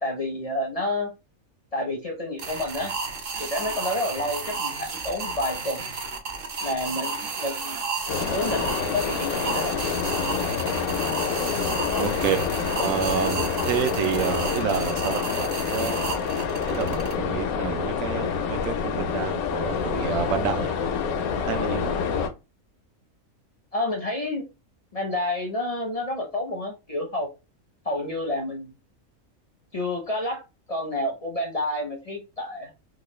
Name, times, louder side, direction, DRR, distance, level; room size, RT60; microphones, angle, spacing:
voice 1, 0.0-1.1 1.7-2.9 3.4-5.8 6.6-9.7 23.7-24.4 24.9-27.3 27.8-28.7 29.7-30.4 30.7-32.7, left 1 dB, 40° left, 1 dB, 0.5 m, -29 dB
sound 1, 2.4-17.1, right 4 dB, 55° right, 0.7 m, -32 dB
sound 2, 8.1-22.3, left 6 dB, 85° left, 1.1 m, -27 dB
voice 2, 12.0-12.4 12.7-16.2 16.7-20.7 21.3-21.9, right 8 dB, 75° right, 6 dB, 0.9 m, -29 dB
3.7 x 2.3 x 3.0 m, 0.26 s
omnidirectional pair, 1.5 m